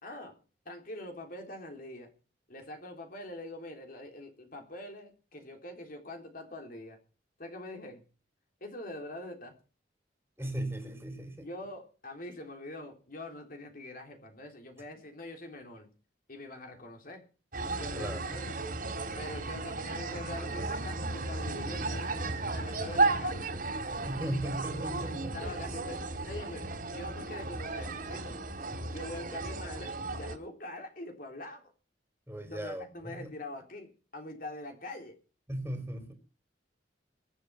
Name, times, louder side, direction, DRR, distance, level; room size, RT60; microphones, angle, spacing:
voice 1, 0.0-0.4 0.6-2.1 2.5-7.0 7.4-8.0 8.6-9.6 11.4-15.9 16.3-17.3 17.8-18.6 19.1-22.3 22.5-23.5 25.3-28.4 28.9-31.7 32.4-35.2, left 1 dB, 55° left, 3.5 m, -44 dB
voice 2, 10.4-11.5 18.0-18.2 24.0-25.4 32.3-33.3 35.5-36.1, right 1 dB, 10° right, 3.5 m, -37 dB
sound 1, 17.5-30.4, right 3 dB, 55° right, 2.9 m, -34 dB
22.5 x 8.2 x 5.7 m
head